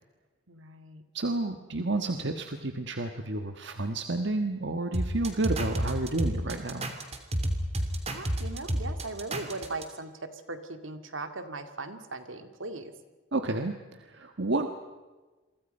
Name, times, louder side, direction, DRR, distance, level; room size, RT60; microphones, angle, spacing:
voice 1, 0.5-1.0 8.1-12.9, right 3 dB, 80° right, 8 dB, 2.3 m, -39 dB
voice 2, 1.1-6.9 13.3-14.7, right 2 dB, 65° right, 6 dB, 1.5 m, -30 dB
sound 1, 4.9-9.8, equal, 35° right, 3.0 m, -30 dB
28.5 x 24.0 x 5.5 m, 1.2 s
head